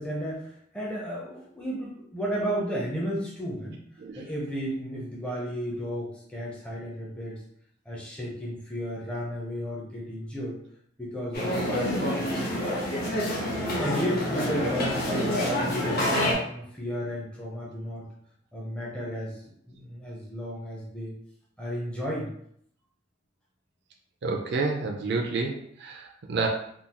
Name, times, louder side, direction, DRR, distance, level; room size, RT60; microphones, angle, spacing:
voice 1, 0.0-3.8 4.1-7.4 7.9-10.6 11.0-12.3 13.8-18.1 18.5-21.1 21.6-22.3, equal, 5° left, -5 dB, 0.6 m, -33 dB
sound 1, 11.3-16.3, left 1 dB, 50° left, 1.0 m, -27 dB
voice 2, 24.2-26.5, right 3 dB, 55° right, 1 dB, 0.4 m, -29 dB
3.6 x 2.3 x 2.8 m, 0.68 s
head